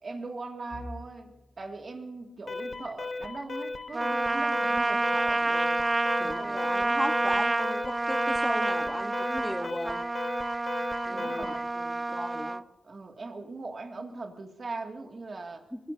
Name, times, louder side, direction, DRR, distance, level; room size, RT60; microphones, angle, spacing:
voice 1, 0.0-5.6 6.2-6.6 11.1-11.7 12.8-15.7, right 3 dB, 50° right, 4 dB, 2.3 m, -40 dB
sound 1, 0.7-12.5 13.0-13.2 13.6-13.8 14.6-15.1, left 1 dB, 30° left, 2.1 m, -55 dB
Alarm, 2.5-11.7, left 3 dB, 50° left, 1.1 m, -37 dB
Trumpet, 3.9-12.6, right 2 dB, 25° right, 0.5 m, -29 dB
voice 2, 5.4-5.8 6.2-10.0 11.1-12.6 15.7-15.8, equal, 5° left, 7 dB, 1.1 m, -36 dB
23.5 x 21.0 x 2.8 m, 1.1 s
wide cardioid pair, 90°, 0 cm